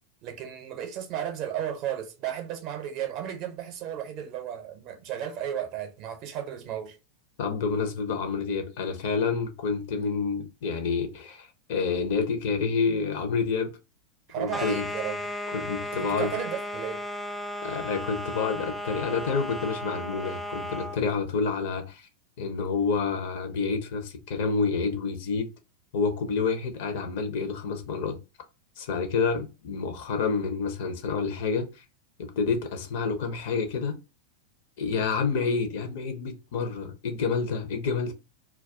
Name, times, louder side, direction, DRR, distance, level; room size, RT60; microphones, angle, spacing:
voice 1, 0.2-7.0 14.3-15.3 15.8-17.0, right 10 dB, 40° right, 0.6 m, -34 dB
voice 2, 7.4-13.7 14.4-14.8 15.5-16.3 17.6-22.1 22.4-25.5 25.9-28.2 28.8-31.7 32.2-34.0 34.8-38.1, left 5 dB, 50° left, 0.6 m, -28 dB
sound 1, 14.5-21.0, left 1 dB, 5° left, 0.3 m, -35 dB
2.2 x 2.2 x 3.5 m
figure-of-eight pair, 90°, 0 cm